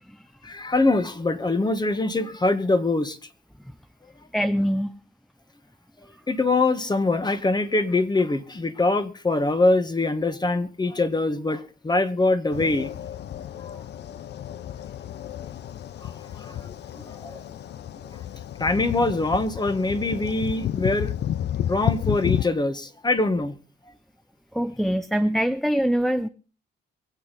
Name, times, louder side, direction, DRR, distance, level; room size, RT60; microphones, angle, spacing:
voice 1, 0.4-3.2 6.3-12.9 13.6-13.7 16.0-17.4 18.6-21.1 21.7-23.5, left 2 dB, 20° left, 1.5 m, -24 dB
voice 2, 4.3-4.9 24.5-26.3, equal, ahead, 0.6 m, -23 dB
sound 1, 12.5-22.4, left 11 dB, 60° left, 0.6 m, -31 dB
24.0 x 8.3 x 4.1 m
cardioid pair, 90°, 20 cm